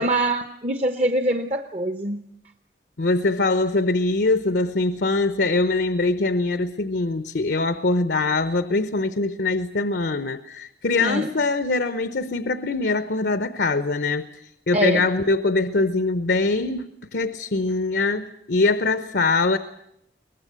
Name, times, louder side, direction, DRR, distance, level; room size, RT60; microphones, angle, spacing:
voice 1, 0.0-2.2 11.0-11.3 14.7-15.1, right 1 dB, 35° right, 8 dB, 0.8 m, -24 dB
voice 2, 3.0-14.3 14.7-19.6, left 3 dB, 75° left, 11 dB, 0.8 m, -23 dB
22.0 x 19.5 x 8.1 m, 0.77 s
head